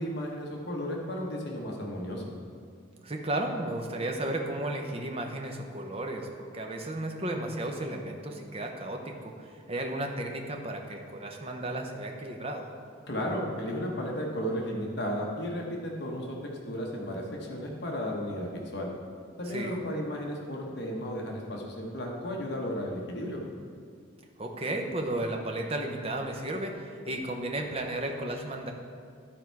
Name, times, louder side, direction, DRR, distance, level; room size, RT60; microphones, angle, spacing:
voice 1, 0.0-2.2 13.1-16.4 16.7-18.9 19.4-23.4, equal, 55° left, -1 dB, 1.1 m, -34 dB
voice 2, 3.0-12.7 19.5-19.8 24.4-28.7, right 1 dB, 30° right, 2 dB, 0.7 m, -34 dB
12.0 x 4.5 x 4.6 m, 2.2 s
head